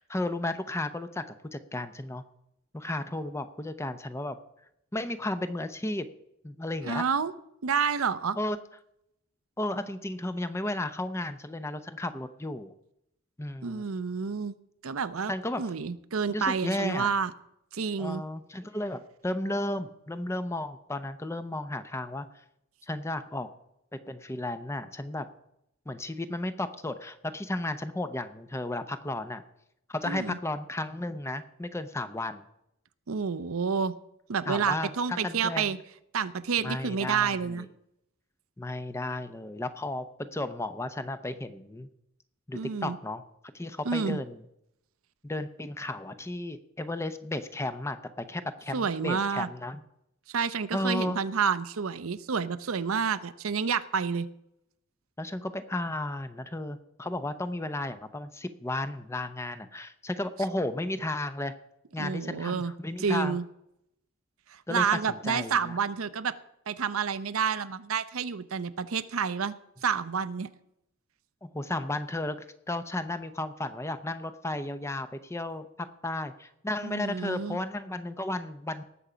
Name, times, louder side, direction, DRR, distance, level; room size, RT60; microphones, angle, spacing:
voice 1, 0.0-2.2 2.7-4.4 4.9-6.1 6.4-7.0 8.4-8.6 9.6-12.7 13.4-13.9 15.3-15.6 16.3-17.1 18.0-22.3 22.8-23.5 23.9-25.2 25.9-29.4 29.9-32.4 34.5-35.7 36.6-37.7 38.6-41.9 42.5-43.2 43.5-44.4 45.2-49.8 50.7-51.2 55.2-61.5 61.9-63.4 64.7-65.7 71.4-72.4 72.7-78.8, left 1 dB, 15° left, 11 dB, 0.6 m, -34 dB
voice 2, 6.8-7.3 7.6-8.4 13.6-14.5 14.8-15.3 15.6-17.3 17.7-18.2 30.0-30.4 33.1-33.9 34.3-35.8 36.1-37.7 42.5-43.0 43.8-44.2 48.7-49.5 50.3-54.3 62.0-62.7 63.0-63.4 64.5-66.3 66.7-69.5 69.8-70.5 76.8-77.6, right 6 dB, 90° right, 12 dB, 0.7 m, -29 dB
18.5 x 7.0 x 5.0 m, 0.80 s
head